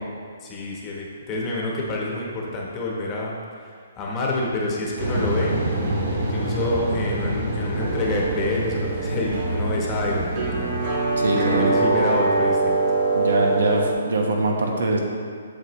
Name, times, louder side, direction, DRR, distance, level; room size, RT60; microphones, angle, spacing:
voice 1, 0.4-5.6 6.1-10.8 11.4-13.0, left 2 dB, 15° left, -3 dB, 0.9 m, -28 dB
sound 1, 5.0-12.4, right 1 dB, 60° right, 1.8 m, -28 dB
sound 2, 7.8-13.9, right 3 dB, 35° right, 1.2 m, -24 dB
voice 2, 11.2-11.7 13.1-15.0, right 2 dB, 80° right, 1 dB, 1.1 m, -23 dB
8.0 x 6.7 x 3.1 m, 2.1 s
hypercardioid pair, 170°, 0 cm